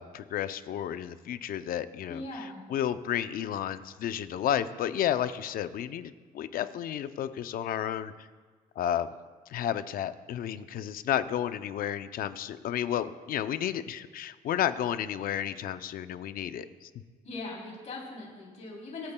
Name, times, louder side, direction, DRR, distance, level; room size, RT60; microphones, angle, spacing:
voice 1, 0.0-8.1 8.8-9.1 9.5-16.9, left 10 dB, 60° left, 12 dB, 0.6 m, -32 dB
voice 2, 2.1-2.6 17.2-19.1, left 2 dB, 45° left, -3 dB, 3.5 m, -40 dB
24.5 x 8.6 x 2.3 m, 1.4 s
cardioid pair, 110°, 17 cm